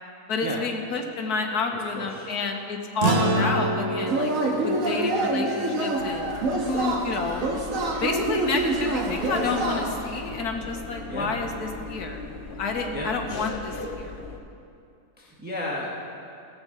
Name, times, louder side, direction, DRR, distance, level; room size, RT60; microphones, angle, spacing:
voice 1, 0.3-4.3 4.6-6.3 6.7-7.5 8.0-12.2 12.6-14.1, left 4 dB, 70° left, 3 dB, 1.7 m, -29 dB
voice 2, 1.9-2.4 11.1-11.3 12.9-13.1 15.2-16.0, left 1 dB, 5° right, -4 dB, 1.4 m, -33 dB
sound 1, 3.0-7.7, right 2 dB, 45° right, 1.3 m, -29 dB
Yell / Cheering, 4.1-10.2, right 2 dB, 60° right, 1.7 m, -27 dB
sound 2, 6.0-14.4, left 3 dB, 40° left, 0.9 m, -37 dB
16.0 x 7.4 x 6.7 m, 2.5 s
omnidirectional pair, 1.7 m